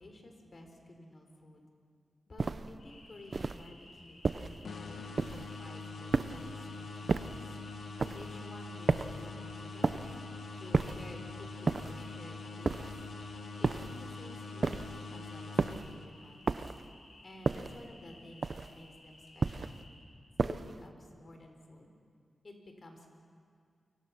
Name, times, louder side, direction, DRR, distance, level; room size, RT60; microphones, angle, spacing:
voice 1, 0.0-1.7 2.3-7.5 8.1-10.2 10.5-12.8 13.6-16.6 17.2-19.7 20.4-21.9 22.4-23.1, left 1 dB, 45° left, 4 dB, 4.1 m, -52 dB
sound 1, 2.4-2.8 3.3-3.7 4.2-4.6 5.2-5.6 6.1-6.6 7.1-7.5 8.0-8.3 8.9-9.3 9.8-10.2 10.7-11.1 11.7-12.1 12.6-13.1 13.6-14.0 14.6-15.0 15.6-15.9 16.5-16.9 17.5-17.9 18.4-18.8 19.4-19.8 20.4-20.8, right 4 dB, 50° right, 0.7 m, -32 dB
sound 2, 2.8-20.0, left 2 dB, 65° left, 6.4 m, -57 dB
sound 3, 4.6-16.4, left 3 dB, 85° left, 1.6 m, -44 dB
29.0 x 23.5 x 6.0 m, 2.2 s
wide cardioid pair, 105°, 0 cm